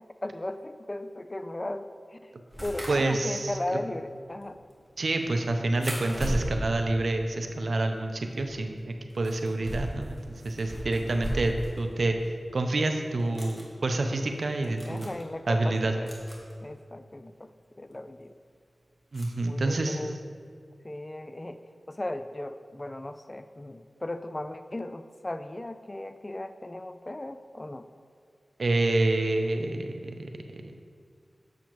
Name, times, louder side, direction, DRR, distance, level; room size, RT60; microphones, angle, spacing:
voice 1, 0.2-2.3 2.6-4.6 14.6-16.1 16.6-18.4 19.4-20.2 20.8-21.6 21.9-27.9, left 1 dB, 25° left, 10 dB, 0.3 m, -37 dB
sound 1, 2.5-8.0 8.3-11.9 12.2-12.3 13.1-13.7 14.3-14.4 14.6-15.2 16.1-16.5 17.9-18.0 19.1-19.2, equal, ahead, 1.6 m, -37 dB
voice 2, 2.9-3.8 5.0-12.2 12.5-15.1 15.5-15.9 19.1-20.1 28.6-30.7, right 2 dB, 70° right, 5 dB, 0.6 m, -28 dB
7.3 x 7.0 x 3.0 m, 2.1 s
wide cardioid pair, 65°, 0 cm